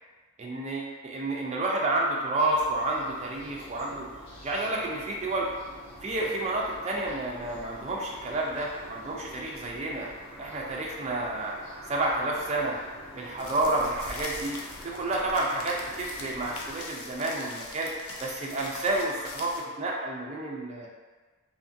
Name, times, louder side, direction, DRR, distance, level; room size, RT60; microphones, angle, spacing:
voice 1, 0.4-4.1 4.4-5.5 6.0-10.1 10.4-11.5 11.9-12.8 13.2-14.6 14.8-17.9 18.2-20.9, right 2 dB, 30° right, -2 dB, 0.4 m, -30 dB
sound 1, 2.5-16.8, equal, 60° left, 0.8 m, -47 dB
sound 2, 13.4-19.6, left 3 dB, 75° left, 0.4 m, -42 dB
2.8 x 2.4 x 2.6 m, 1.3 s
head